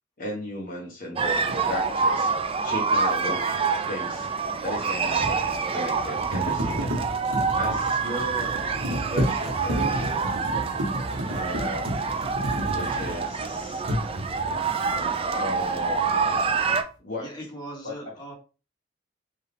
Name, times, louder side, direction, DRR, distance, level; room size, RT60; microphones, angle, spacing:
voice 1, 0.2-1.4 1.7-2.3 2.6-3.4 3.9-4.3 4.6-5.4 5.7-6.9 7.5-8.5 9.1-10.3 11.3-12.2 12.7-13.8 14.9-16.0 17.0-17.3 17.8-18.3, left 1 dB, 50° left, -3 dB, 1.1 m, -35 dB
sound 1, 1.2-16.8, right 5 dB, 30° right, 0.4 m, -27 dB
sound 2, 1.5-1.6 4.7-13.5 13.8-14.6, equal, 90° right, 1.2 m, -31 dB
voice 2, 17.2-18.3, right 1 dB, 20° left, -2 dB, 1.4 m, -39 dB
4.6 x 2.4 x 3.4 m, 0.34 s
head